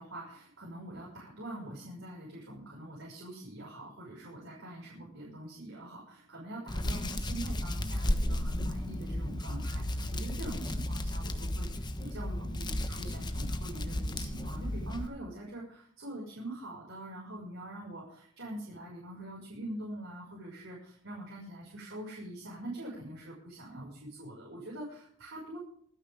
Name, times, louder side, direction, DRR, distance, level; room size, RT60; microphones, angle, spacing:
voice 1, 0.0-25.6, right 1 dB, 70° right, -4 dB, 6.1 m, -44 dB
Hands, 6.7-15.1, left 1 dB, 20° left, 1.3 m, -34 dB
25.0 x 10.0 x 3.7 m, 0.62 s
head